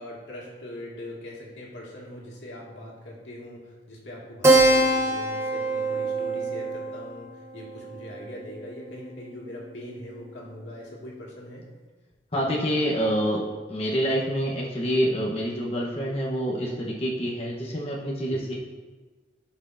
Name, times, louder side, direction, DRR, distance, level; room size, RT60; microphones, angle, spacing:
voice 1, 0.0-11.7 18.3-18.4, left 1 dB, 90° left, -4 dB, 2.0 m, -41 dB
Keyboard (musical), 4.4-9.4, right 2 dB, 15° right, 0.8 m, -25 dB
voice 2, 12.3-13.4 13.7-18.5, equal, 35° left, -3 dB, 1.0 m, -27 dB
12.5 x 5.5 x 2.6 m, 1.3 s
head